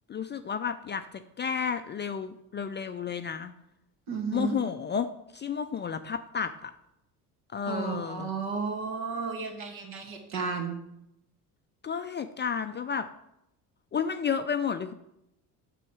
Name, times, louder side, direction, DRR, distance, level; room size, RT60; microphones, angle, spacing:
voice 1, 0.1-3.5 4.3-6.7 7.5-8.3 11.8-13.1 13.9-14.9, left 7 dB, 25° left, 9 dB, 0.4 m, -32 dB
voice 2, 4.1-4.6 7.7-10.7, right 5 dB, 70° right, 2 dB, 2.2 m, -33 dB
7.9 x 6.2 x 4.7 m, 0.82 s
hypercardioid pair, 60°, 48 cm